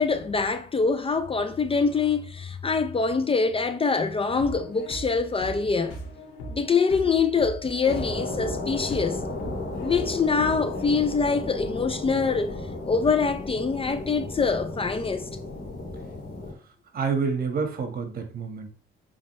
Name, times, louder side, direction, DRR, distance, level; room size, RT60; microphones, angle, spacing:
voice 1, 0.0-6.0 6.5-9.2 9.8-12.6 12.8-15.3, left 5 dB, 30° left, 0.5 m, -24 dB
sound 1, 4.4-10.8, equal, 80° left, 2.5 m, -39 dB
sound 2, 7.8-16.5, left 2 dB, 50° left, 2.6 m, -34 dB
voice 2, 16.9-18.7, right 5 dB, 50° right, 1.6 m, -28 dB
7.3 x 4.3 x 3.2 m
cardioid pair, 90°, 20 cm